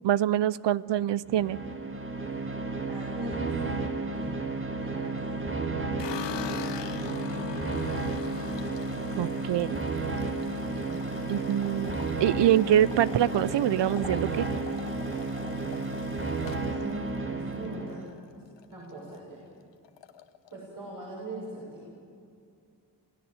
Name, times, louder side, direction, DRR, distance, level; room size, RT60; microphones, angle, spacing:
voice 1, 0.0-1.6 9.2-9.8 11.3-14.5, right 12 dB, 75° right, 19 dB, 0.7 m, -25 dB
sound 1, 1.3-18.1, right 3 dB, 30° right, 2.0 m, -32 dB
voice 2, 2.8-3.6 4.1-5.8 10.7-11.1 16.7-18.1 18.7-19.4 20.5-21.9, right 2 dB, 50° right, -5 dB, 7.0 m, -41 dB
sound 2, 6.0-18.2 18.6-19.2 19.5-19.6 19.8-20.6, left 9 dB, 80° left, 1.1 m, -41 dB
28.0 x 16.5 x 8.1 m, 2.4 s
cardioid pair, 80°, 43 cm